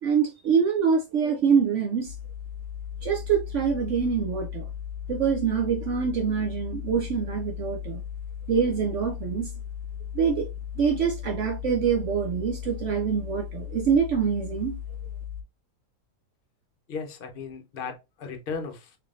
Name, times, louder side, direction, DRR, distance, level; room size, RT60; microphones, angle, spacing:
voice 1, 0.0-2.1 3.0-4.7 5.1-8.0 8.5-9.6 10.1-10.5 10.8-14.8, right 6 dB, 75° right, 0.6 m, -25 dB
sound 1, 2.1-15.4, left 9 dB, 75° left, 1.1 m, -36 dB
voice 2, 16.9-19.0, left 5 dB, 50° left, 0.6 m, -36 dB
3.7 x 3.3 x 2.4 m
omnidirectional pair, 1.8 m